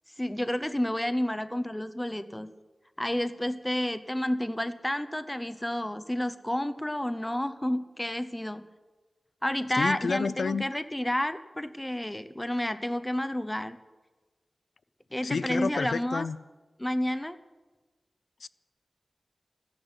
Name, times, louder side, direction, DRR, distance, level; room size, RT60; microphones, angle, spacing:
voice 1, 0.2-2.5 3.0-8.6 9.4-13.8 15.1-16.3 16.8-17.4, left 1 dB, 10° left, 0.7 m, -30 dB
voice 2, 9.7-10.6 15.2-16.4 18.4-18.5, left 5 dB, 85° left, 0.4 m, -30 dB
14.5 x 10.5 x 8.0 m
wide cardioid pair, 110°, 0 cm